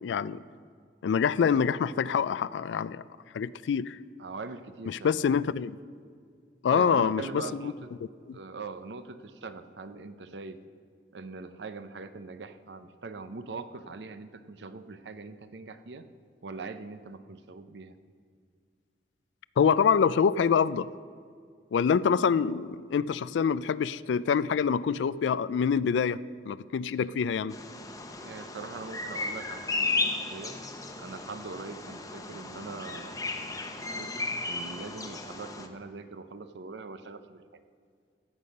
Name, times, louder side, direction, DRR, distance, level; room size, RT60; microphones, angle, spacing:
voice 1, 0.0-0.4 1.0-3.0 3.3-4.0 4.9-5.8 6.6-7.4 8.3-8.4 19.6-20.9 21.7-26.2 26.5-27.5, left 6 dB, 80° left, 18 dB, 0.3 m, -25 dB
voice 2, 4.2-5.2 6.7-7.9 8.3-10.6 11.1-16.1 16.4-17.9 27.0-27.1 28.2-30.6 31.0-33.2 33.8-34.1 34.4-37.6, right 4 dB, 75° right, 11 dB, 0.6 m, -42 dB
Bird vocalization bird call bird song, 27.5-35.7, left 3 dB, 20° left, 0.8 m, -35 dB
14.5 x 8.3 x 5.3 m, 2.1 s
head